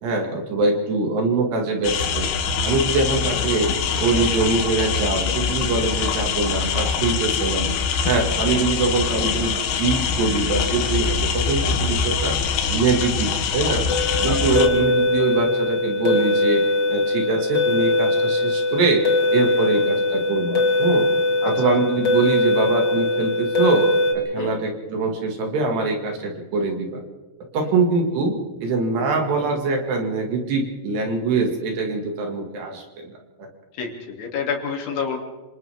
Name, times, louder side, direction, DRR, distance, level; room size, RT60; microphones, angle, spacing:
voice 1, 0.0-2.3 2.6-7.7 8.1-12.4 12.7-13.9 14.2-16.6 16.9-19.0 19.3-21.1 21.4-23.9 24.1-27.0 27.5-28.4 28.6-33.5, right 3 dB, 60° right, 2 dB, 3.8 m, -23 dB
sound 1, 1.8-14.7, left 6 dB, 85° left, 4.4 m, -24 dB
sound 2, 13.9-24.1, left 2 dB, 30° left, 2.0 m, -21 dB
voice 2, 21.4-21.7 24.4-24.5 33.8-35.2, left 5 dB, 70° left, 1 dB, 5.1 m, -28 dB
29.0 x 26.5 x 3.6 m, 1.3 s
omnidirectional pair, 5.9 m